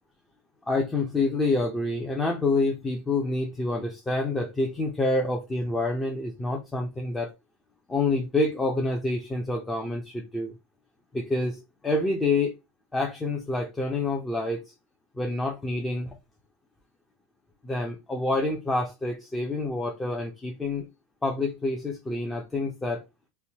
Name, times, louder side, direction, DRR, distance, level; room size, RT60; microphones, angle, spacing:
voice 1, 0.7-7.3 7.9-10.5 11.1-12.6 12.9-14.7 15.2-16.1 17.6-20.9 21.2-23.0, left 2 dB, 10° left, 0.6 m, -27 dB
3.2 x 2.1 x 2.8 m
supercardioid pair, 140°, 0 cm